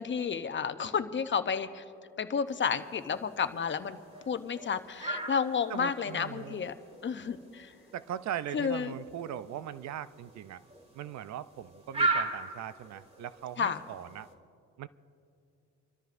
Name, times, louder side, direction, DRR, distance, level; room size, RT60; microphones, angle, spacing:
voice 1, 0.0-1.8 2.2-4.0 4.3-6.7 7.0-7.7 8.5-8.9 13.6-13.8, left 6 dB, 40° left, 10 dB, 0.8 m, -31 dB
sound 1, 2.5-14.3, right 2 dB, 20° right, 2.0 m, -39 dB
voice 2, 5.7-6.7 7.9-10.6 10.9-14.3 14.8-14.9, right 11 dB, 65° right, 16 dB, 0.5 m, -40 dB
27.5 x 13.5 x 2.6 m, 2.5 s
cardioid pair, 90°, 30 cm